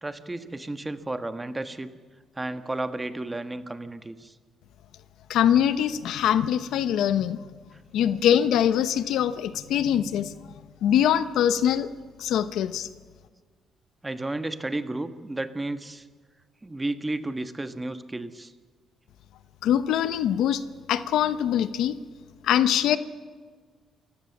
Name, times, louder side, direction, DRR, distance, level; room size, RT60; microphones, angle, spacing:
voice 1, 0.0-1.9 2.3-4.3 7.7-7.8 14.0-16.1 16.6-18.5, right 2 dB, 15° right, 10 dB, 1.4 m, -32 dB
voice 2, 5.3-7.4 7.9-10.3 10.8-11.9 12.2-12.9 19.6-20.6 20.9-21.9 22.4-23.0, left 10 dB, 80° left, 13 dB, 0.9 m, -23 dB
28.5 x 16.0 x 7.3 m, 1.5 s
cardioid pair, 90°, 0 cm